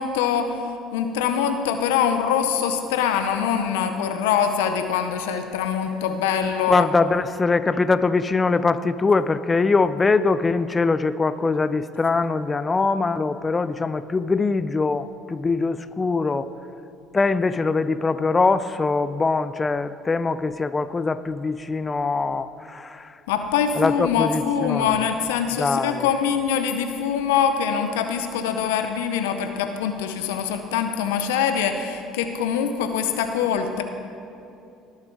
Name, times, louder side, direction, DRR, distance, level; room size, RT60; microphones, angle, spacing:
voice 1, 0.0-6.9 23.3-33.8, left 7 dB, 90° left, 7 dB, 0.6 m, -24 dB
voice 2, 6.7-16.5 17.1-23.2 23.8-24.9 25.6-26.1, left 4 dB, 25° left, 14 dB, 0.4 m, -22 dB
19.0 x 7.3 x 3.9 m, 2.7 s
supercardioid pair, 75°, 0 cm